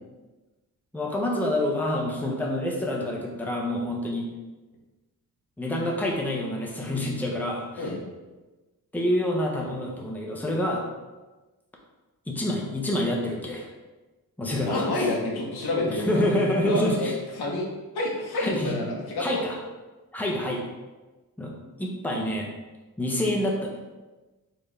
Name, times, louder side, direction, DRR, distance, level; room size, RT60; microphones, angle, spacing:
voice 1, 0.9-4.3 5.6-7.9 8.9-10.8 12.3-13.7 14.4-15.1 15.9-17.1 18.4-18.8 19.2-19.6 20.1-20.6 21.4-22.5 23.0-23.8, left 1 dB, 5° left, -2 dB, 0.8 m, -27 dB
voice 2, 14.7-16.1 16.6-17.6 17.9-18.8 19.1-19.4, left 2 dB, 85° left, -2 dB, 1.2 m, -28 dB
4.5 x 3.5 x 3.3 m, 1.2 s
cardioid pair, 95°, 37 cm